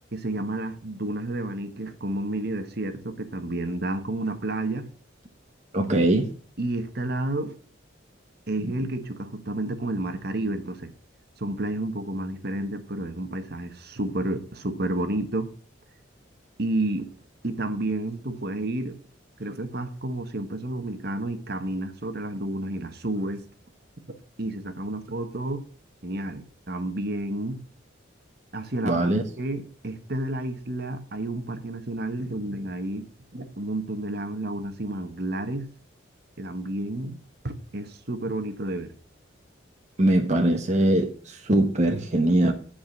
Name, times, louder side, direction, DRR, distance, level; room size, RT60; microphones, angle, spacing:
voice 1, 0.1-4.9 6.6-7.5 8.5-10.9 11.4-15.5 16.6-17.1 17.4-19.0 19.4-23.4 24.4-25.6 26.0-27.6 28.5-29.1 29.4-33.1 33.3-35.7 36.4-37.2 37.4-38.9, right 1 dB, 55° right, 8 dB, 1.3 m, -30 dB
voice 2, 5.7-6.3 8.6-8.7 28.8-29.2 40.0-42.5, right 1 dB, 35° right, 2 dB, 1.1 m, -21 dB
10.0 x 5.0 x 7.3 m, 0.42 s
head